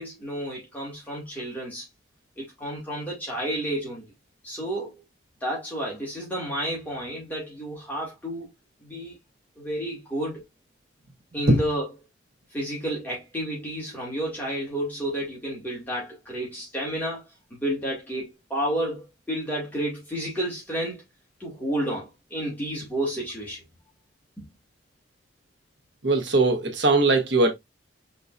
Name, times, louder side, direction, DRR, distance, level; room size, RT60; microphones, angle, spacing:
voice 1, 0.0-1.8 2.4-4.0 4.4-5.0 5.4-8.5 8.8-9.2 9.6-10.4 11.3-11.9 12.5-17.2 17.6-21.0 21.4-23.6 24.4-24.5, right 1 dB, 10° left, 2.1 m, -31 dB
voice 2, 26.0-27.5, right 2 dB, 75° right, 1.3 m, -20 dB
5.4 x 3.8 x 2.5 m
head